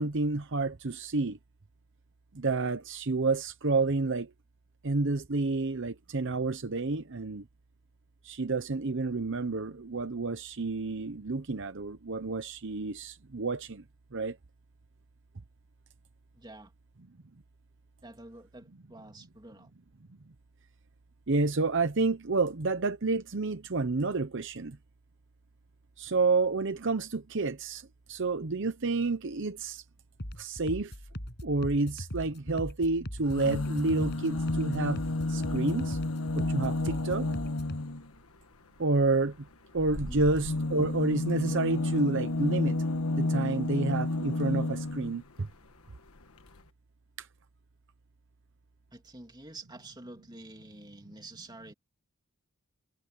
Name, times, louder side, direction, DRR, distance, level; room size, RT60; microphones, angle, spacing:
voice 1, 0.0-1.4 2.3-4.3 4.8-7.4 8.2-13.8 14.1-14.4 21.3-24.8 26.0-29.8 30.4-30.9 31.4-35.0 35.3-36.0 36.3-37.3 38.8-39.5 39.7-42.8 43.2-45.5 47.2-47.3, right 3 dB, 55° right, 0.8 m, -29 dB
voice 2, 16.3-16.7 18.0-19.7 40.1-40.3 48.9-51.7, right 2 dB, 20° right, 3.0 m, -48 dB
sound 1, 30.2-37.8, equal, 50° left, 6.8 m, -40 dB
sound 2, 33.2-38.1 39.8-45.2 46.2-46.3 46.5-46.6, left 2 dB, 75° left, 1.5 m, -31 dB
head